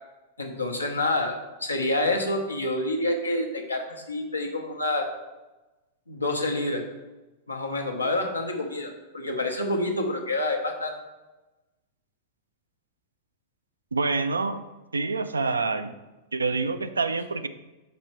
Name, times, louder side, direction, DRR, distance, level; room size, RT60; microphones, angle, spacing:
voice 1, 0.4-5.1 6.1-6.8 7.5-10.9, left 1 dB, 85° left, 1 dB, 0.9 m, -28 dB
voice 2, 13.9-14.6 14.9-15.9 16.3-17.5, right 4 dB, 80° right, 10 dB, 0.4 m, -26 dB
6.0 x 4.3 x 4.5 m, 1.1 s
figure-of-eight pair, 95°, 0 cm